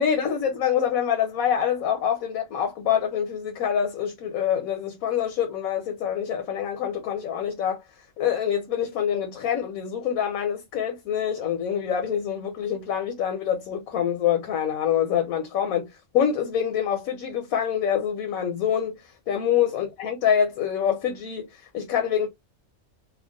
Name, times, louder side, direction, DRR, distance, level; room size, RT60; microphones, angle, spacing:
voice 1, 0.0-7.8 8.2-15.9 16.1-18.9 19.3-22.3, left 8 dB, 75° left, 1.2 m, -25 dB
3.7 x 2.1 x 3.6 m
omnidirectional pair, 1.5 m